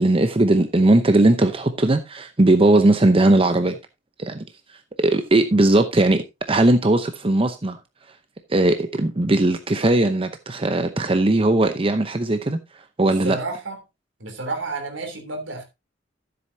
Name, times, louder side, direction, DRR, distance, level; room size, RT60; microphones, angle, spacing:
voice 1, 0.0-3.8 4.2-4.4 5.0-7.8 8.5-12.6 13.0-13.4, right 2 dB, 30° right, 0.8 m, -18 dB
voice 2, 13.2-13.8 14.2-15.6, right 3 dB, 80° right, 3.2 m, -30 dB
13.5 x 7.8 x 2.8 m
head